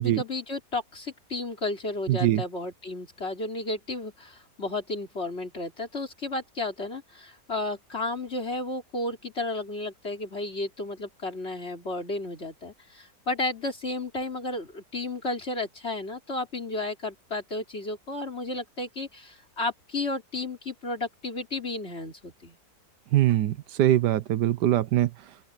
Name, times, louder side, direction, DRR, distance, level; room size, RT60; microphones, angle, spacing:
voice 1, 0.0-22.6, left 2 dB, 35° left, 3.8 m, -33 dB
voice 2, 2.1-2.4 23.1-25.1, right 13 dB, 80° right, 1.3 m, -22 dB
open air
omnidirectional pair, 1.8 m